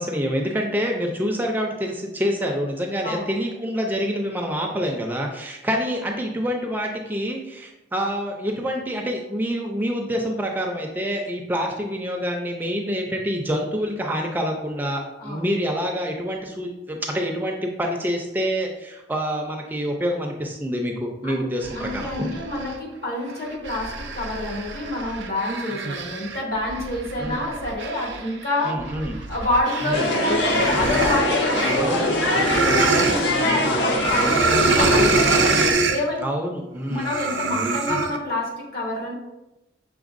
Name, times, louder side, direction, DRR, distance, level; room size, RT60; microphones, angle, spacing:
voice 1, 0.0-22.3 27.2-27.5 28.6-29.2 29.8-30.1 31.8-32.1 33.3-33.5 36.2-37.1, equal, 10° right, 1 dB, 0.4 m, -27 dB
sound 1, 21.6-22.8 23.3-30.1 30.4-33.2 33.9-36.0 36.9-38.2, right 4 dB, 85° right, 0.5 m, -25 dB
voice 2, 21.7-28.8 29.1-35.3 35.9-36.2 36.9-39.1, left 1 dB, 60° left, -4 dB, 1.5 m, -28 dB
sound 2, 29.9-35.7, left 1 dB, 75° left, 0.7 m, -22 dB
6.1 x 3.3 x 2.5 m, 0.97 s
head